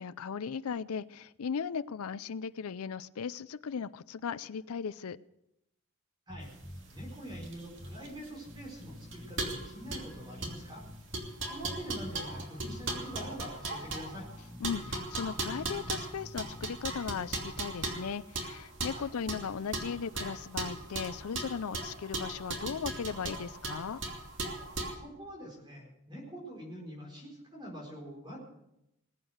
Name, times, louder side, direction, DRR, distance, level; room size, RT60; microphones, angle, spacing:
voice 1, 0.0-5.2 14.6-24.0, left 6 dB, 85° left, 15 dB, 0.5 m, -37 dB
sound 1, 6.3-7.5 7.8-8.0 8.5-11.3 11.6-12.8 13.1-13.3 13.8-16.6, left 1 dB, 10° left, 1.6 m, -47 dB
sound 2, 6.5-25.0, right 2 dB, 55° right, 2.7 m, -38 dB
voice 2, 6.9-10.8 11.5-14.3 18.9-19.1 25.0-28.4, equal, 20° right, -1 dB, 4.5 m, -45 dB
20.5 x 9.1 x 6.4 m, 0.84 s
head